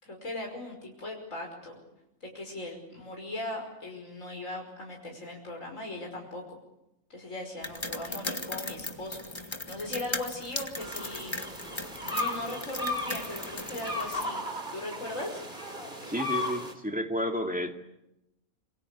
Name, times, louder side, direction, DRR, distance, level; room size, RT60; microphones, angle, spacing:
voice 1, 0.0-1.8 2.2-6.6 7.1-11.4 12.0-14.4 14.7-15.4, left 1 dB, 60° left, 1 dB, 6.0 m, -39 dB
sound 1, 7.6-14.2, left 2 dB, 20° left, 1.6 m, -38 dB
sound 2, 10.8-16.7, left 2 dB, 35° right, 3.9 m, -35 dB
voice 2, 16.1-17.7, equal, 5° right, 4 dB, 2.4 m, -31 dB
27.5 x 25.0 x 8.5 m, 0.90 s
omnidirectional pair, 1.5 m